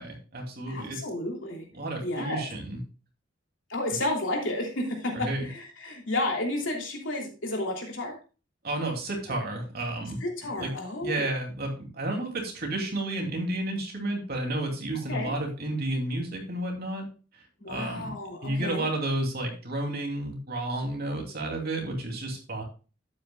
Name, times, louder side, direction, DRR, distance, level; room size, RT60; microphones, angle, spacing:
voice 1, 0.0-1.0 1.7-2.8 5.1-5.5 8.6-10.2 10.6-10.7 11.0-17.0 17.3-18.1 18.4-22.6, right 1 dB, 55° right, 1 dB, 2.8 m, -31 dB
voice 2, 0.7-1.7 2.0-2.5 3.7-8.2 10.2-11.3 15.1-15.3 17.6-18.9, left 1 dB, 75° left, 0 dB, 3.0 m, -31 dB
11.5 x 8.8 x 2.3 m, 0.34 s
head